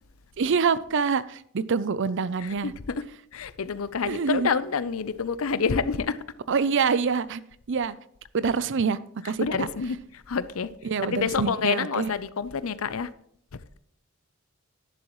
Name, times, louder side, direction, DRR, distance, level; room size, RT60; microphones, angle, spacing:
voice 1, 0.4-2.7 4.1-4.5 6.5-7.4 7.7-7.9 8.3-9.0 9.2-9.7 10.8-12.1, right 5 dB, 60° right, 0.5 m, -25 dB
voice 2, 2.4-3.1 3.3-6.2 9.2-10.7 11.1-13.1, left 5 dB, 80° left, 0.6 m, -28 dB
11.0 x 11.0 x 3.1 m
head